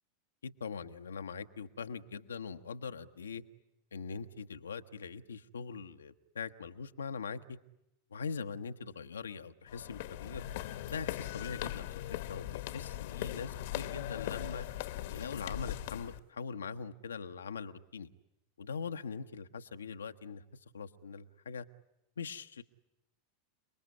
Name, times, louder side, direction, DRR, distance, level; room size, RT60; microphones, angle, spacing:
voice 1, 0.4-3.4 3.9-7.6 8.1-10.4 10.9-12.0 12.3-14.7 15.1-18.1 18.6-20.4 20.7-21.7 22.2-22.6, left 5 dB, 80° left, 8 dB, 1.1 m, -42 dB
sound 1, 9.7-16.2, left 14 dB, 60° left, 1.2 m, -40 dB
29.5 x 21.0 x 9.7 m, 0.85 s
figure-of-eight pair, 90°, 0 cm